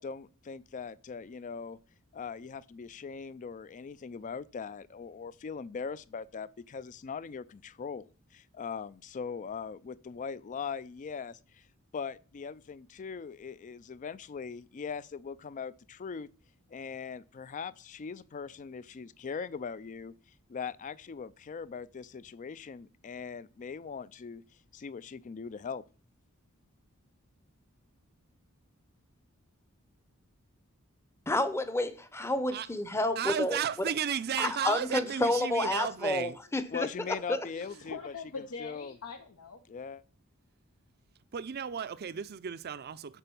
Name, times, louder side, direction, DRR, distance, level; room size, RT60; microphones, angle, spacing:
voice 1, 0.0-1.8 2.1-11.6 11.9-16.3 16.7-20.1 20.5-24.4 24.7-25.8 36.7-38.1 38.6-38.9 39.7-40.0, left 5 dB, 35° left, 0.3 m, -40 dB
voice 2, 31.3-33.6 34.4-36.9 37.3-37.5, left 1 dB, 10° left, 0.7 m, -30 dB
voice 3, 33.2-36.4 37.5-37.8 41.3-43.2, right 8 dB, 45° right, 0.5 m, -34 dB
voice 4, 37.6-39.6, left 5 dB, 80° left, 0.8 m, -43 dB
10.0 x 3.9 x 6.9 m
head